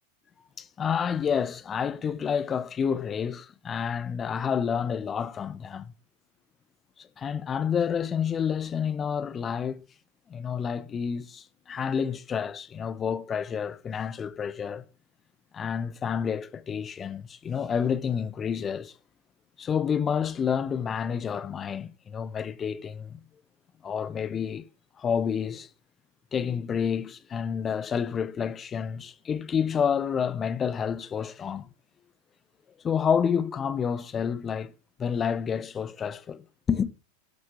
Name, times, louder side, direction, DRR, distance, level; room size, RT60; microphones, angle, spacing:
voice 1, 0.6-5.9 7.0-9.8 10.3-14.8 15.5-18.9 19.6-23.2 23.8-24.6 25.0-25.7 26.3-31.7 32.8-34.7 35.0-36.9, left 7 dB, 20° left, 1.0 m, -29 dB
12.0 x 7.7 x 8.5 m
figure-of-eight pair, 90°, 0 cm